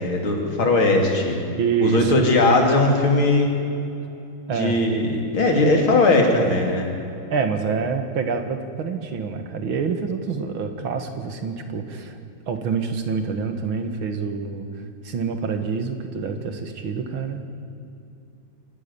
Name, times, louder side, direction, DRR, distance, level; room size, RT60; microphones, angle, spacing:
voice 1, 0.0-1.4 1.8-3.5 4.5-6.9, left 2 dB, 80° left, 1 dB, 3.8 m, -19 dB
voice 2, 1.6-2.3 4.5-4.8 7.3-12.2 12.5-17.5, right 5 dB, 75° right, 6 dB, 2.5 m, -26 dB
25.0 x 12.5 x 10.0 m, 2.7 s
omnidirectional pair, 2.2 m